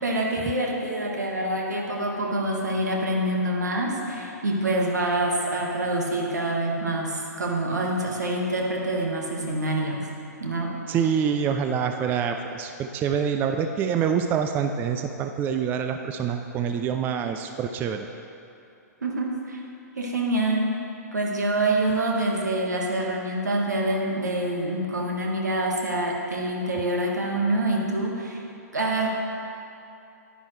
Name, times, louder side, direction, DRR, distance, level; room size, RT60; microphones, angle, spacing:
voice 1, 0.0-10.1 10.4-10.7 19.0-19.6 19.9-20.7 21.1-28.4 28.7-29.1, right 1 dB, 75° right, -1 dB, 1.6 m, -26 dB
voice 2, 10.9-18.1, right 7 dB, 20° right, 6 dB, 0.4 m, -26 dB
10.5 x 10.0 x 3.2 m, 2.7 s
figure-of-eight pair, 115°, 9 cm